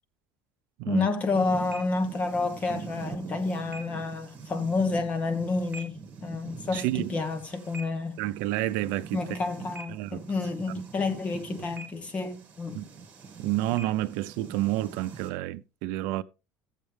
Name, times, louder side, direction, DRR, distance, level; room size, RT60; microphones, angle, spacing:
voice 1, 0.9-8.2 9.1-12.8, left 3 dB, 25° left, 1.3 m, -29 dB
sound 1, 1.3-15.3, right 4 dB, 25° right, 2.1 m, -43 dB
voice 2, 6.7-7.2 8.2-9.2 9.9-10.3 12.7-12.9 13.4-16.2, right 15 dB, 70° right, 0.6 m, -29 dB
14.0 x 7.4 x 3.4 m
cardioid pair, 150°, 5 cm